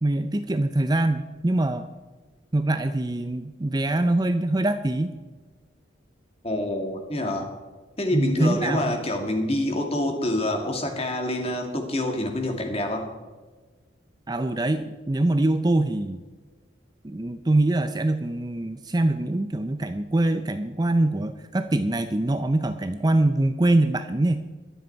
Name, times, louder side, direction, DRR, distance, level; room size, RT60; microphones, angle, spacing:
voice 1, 0.0-1.9 2.5-5.1 8.1-9.0 14.3-16.2 17.0-24.4, right 1 dB, 20° right, 9 dB, 0.5 m, -24 dB
voice 2, 6.4-7.5 8.0-13.1, left 1 dB, 30° left, 3 dB, 2.2 m, -27 dB
23.0 x 7.7 x 4.6 m, 1.3 s
head